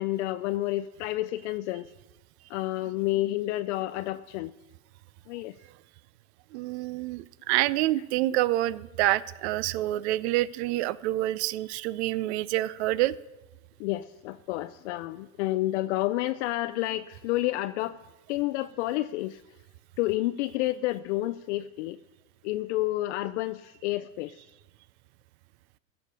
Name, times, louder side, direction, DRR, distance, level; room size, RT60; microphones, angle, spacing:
voice 1, 0.0-1.9 2.5-4.5 5.3-5.5 13.8-18.0 18.3-19.4 20.0-22.0 22.4-24.4, left 16 dB, 60° left, 11 dB, 0.5 m, -30 dB
voice 2, 6.5-13.2, right 16 dB, 55° right, 20 dB, 0.6 m, -27 dB
15.5 x 7.0 x 6.8 m, 1.1 s
supercardioid pair, 130°, 41 cm